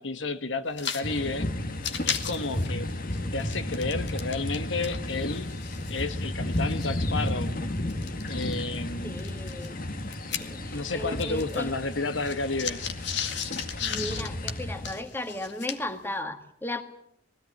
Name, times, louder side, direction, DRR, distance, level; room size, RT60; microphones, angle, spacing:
voice 1, 0.0-1.5 2.0-2.9 3.3-5.5 5.9-7.5 8.3-9.2 10.7-12.9, left 3 dB, 90° left, 1.4 m, -31 dB
sound 1, 0.7-1.1 1.3-1.4 1.7-4.6 4.8-8.6 9.2-10.9 11.2-16.0, left 8 dB, 70° left, 2.0 m, -36 dB
sound 2, 1.0-15.0, left 1 dB, 50° left, 1.6 m, -33 dB
voice 2, 9.0-9.8 10.4-11.7 13.2-13.3 13.8-16.8, left 1 dB, 10° left, 1.8 m, -36 dB
20.5 x 16.5 x 9.9 m
head